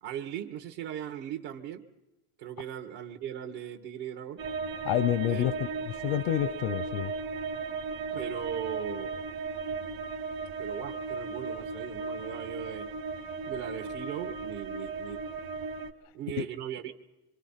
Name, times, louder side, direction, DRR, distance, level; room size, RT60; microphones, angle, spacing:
voice 1, 0.0-1.9 2.4-4.4 5.3-5.5 8.1-9.1 10.6-12.9 13.4-15.3 16.1-16.9, right 10 dB, 75° right, 3 dB, 2.0 m, -38 dB
sound 1, 4.4-15.9, right 4 dB, 55° right, 1.4 m, -36 dB
voice 2, 4.8-5.5 5.9-7.1 16.4-16.5, left 12 dB, 85° left, 16 dB, 0.8 m, -28 dB
26.0 x 24.5 x 5.8 m, 0.99 s
cardioid pair, 140°, 42 cm